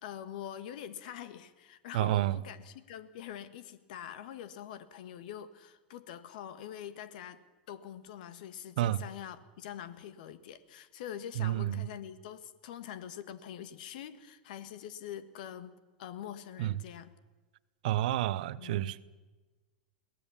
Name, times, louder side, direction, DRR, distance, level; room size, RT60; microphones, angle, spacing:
voice 1, 0.0-15.7 16.0-17.1 18.6-19.0, left 10 dB, 60° left, 13 dB, 1.4 m, -44 dB
voice 2, 1.9-2.4 8.8-9.0 11.4-11.8 16.6-16.7 17.8-19.0, right 14 dB, 60° right, 17 dB, 0.8 m, -29 dB
22.0 x 17.5 x 7.1 m, 1.3 s
hypercardioid pair, 95°, 5 cm